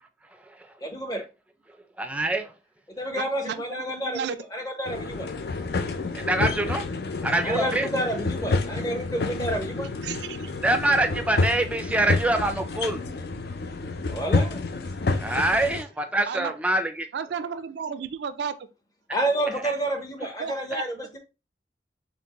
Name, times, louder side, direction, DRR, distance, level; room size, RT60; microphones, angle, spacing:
voice 1, 0.8-1.2 3.0-5.3 7.4-9.9 14.1-14.6 19.1-21.2, right 1 dB, 20° left, 0.7 m, -29 dB
voice 2, 2.0-2.5 6.1-6.9 7.2-7.9 10.6-13.0 15.2-17.1 19.5-19.7, right 2 dB, 10° right, 0.4 m, -25 dB
voice 3, 3.1-4.4 10.0-10.5 16.3-16.5 17.1-18.6 20.4-20.8, right 6 dB, 75° right, 0.4 m, -33 dB
sound 1, 4.9-15.8, left 3 dB, 60° left, 0.5 m, -29 dB
4.4 x 3.2 x 2.9 m
head